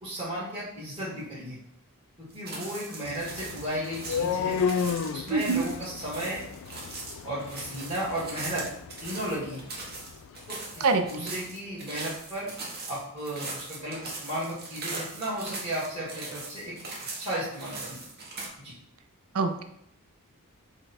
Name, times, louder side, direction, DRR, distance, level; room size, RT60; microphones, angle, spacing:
voice 1, 0.0-1.6 2.2-4.6 5.1-6.4 7.2-8.7 9.0-9.7 10.5-12.5 12.9-16.7 17.2-18.0 18.6-18.7, right 1 dB, 25° right, -12 dB, 1.6 m, -34 dB
sound 1, 2.3-18.5, right 3 dB, 45° right, 1.1 m, -40 dB
sound 2, 3.1-11.0, left 6 dB, 65° left, 0.3 m, -34 dB
voice 2, 5.3-5.6 10.8-11.3 19.3-19.6, right 4 dB, 70° right, 7 dB, 0.5 m, -25 dB
5.2 x 2.2 x 4.1 m, 0.71 s
head